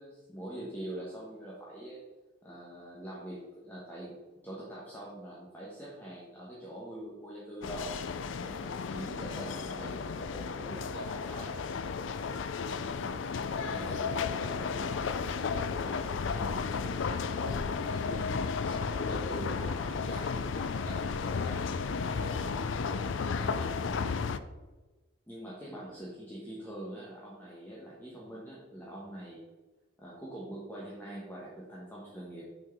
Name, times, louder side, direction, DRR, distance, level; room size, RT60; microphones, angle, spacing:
voice 1, 0.0-2.0 2.4-4.2 4.4-7.9 8.4-11.7 13.5-21.8 22.1-22.7 23.4-23.8 25.3-29.4 30.0-32.5, right 1 dB, 10° left, -6 dB, 1.2 m, -44 dB
sound 1, 7.6-24.4, left 5 dB, 65° left, 0.4 m, -33 dB
6.3 x 4.5 x 5.9 m, 1.2 s
head